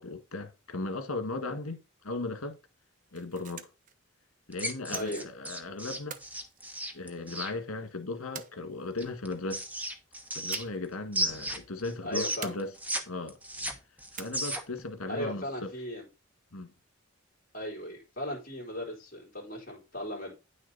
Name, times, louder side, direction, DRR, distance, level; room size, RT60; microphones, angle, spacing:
voice 1, 0.0-1.8 2.0-2.6 3.1-3.7 4.5-6.2 6.9-9.6 10.3-12.7 13.1-13.4 14.1-15.7 16.5-16.7, left 2 dB, 80° left, 1.9 m, -37 dB
sound 1, 2.9-3.9 4.9-5.6 6.1-7.4 8.3-9.1 10.5-11.0 11.2-11.4 12.4-13.1 14.2-14.7, right 7 dB, 40° right, 0.8 m, -45 dB
sound 2, 4.5-7.5 9.0-10.8 11.1-13.0 13.3-14.8, equal, 5° right, 1.2 m, -34 dB
voice 2, 4.9-5.2 12.0-12.6 15.1-16.1 17.5-20.4, left 1 dB, 40° left, 3.7 m, -37 dB
9.7 x 6.5 x 4.1 m
head